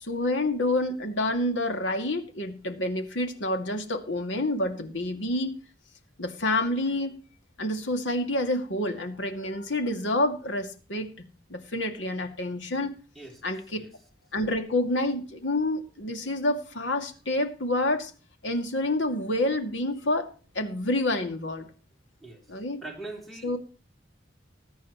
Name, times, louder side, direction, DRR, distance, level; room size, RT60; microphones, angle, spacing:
voice 1, 0.0-5.6 6.2-7.2 7.6-11.1 11.5-12.9 13.4-13.6 14.3-18.1 18.4-20.3 20.5-21.7 22.5-22.8 23.4-23.6, left 1 dB, 80° left, 5 dB, 2.4 m, -28 dB
voice 2, 22.8-23.6, right 2 dB, ahead, -1 dB, 3.3 m, -41 dB
20.5 x 9.5 x 3.1 m, 0.37 s
head